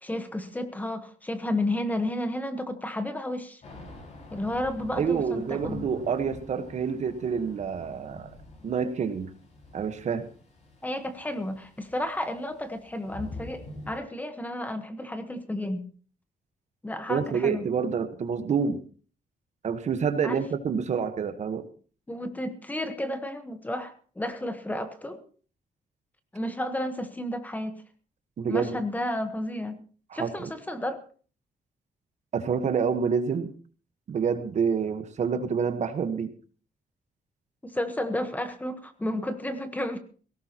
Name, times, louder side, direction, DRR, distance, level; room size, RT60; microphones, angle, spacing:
voice 1, 0.0-3.6 4.3-5.9 10.8-15.8 16.8-17.7 20.2-20.4 22.1-25.2 26.3-27.8 28.5-29.8 30.1-31.0 37.6-40.0, left 1 dB, 10° left, 9 dB, 1.2 m, -32 dB
Thunder / Rain, 3.6-14.0, left 2 dB, 50° left, 5.5 m, -46 dB
voice 2, 5.0-8.3 8.6-9.3 9.7-10.2 17.1-18.8 19.6-21.6 28.4-28.8 30.1-30.5 32.3-33.5 34.1-36.3, right 6 dB, 50° right, 9 dB, 1.2 m, -27 dB
18.0 x 17.0 x 2.9 m, 0.40 s
wide cardioid pair, 160°, 15 cm